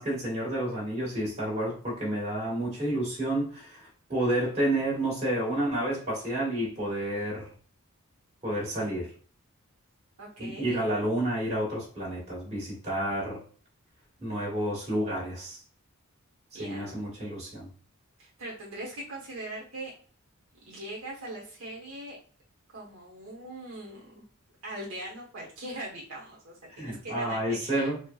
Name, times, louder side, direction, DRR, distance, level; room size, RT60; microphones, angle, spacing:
voice 1, 0.0-7.5 8.4-9.1 10.4-13.4 14.2-15.6 16.6-17.7 26.8-28.0, right 1 dB, 30° right, -5 dB, 1.4 m, -30 dB
voice 2, 10.2-10.8 16.5-17.1 18.2-19.9 20.7-22.2 22.7-24.2 24.6-27.9, right 1 dB, 70° right, -4 dB, 1.0 m, -41 dB
4.4 x 2.0 x 2.2 m, 0.42 s
head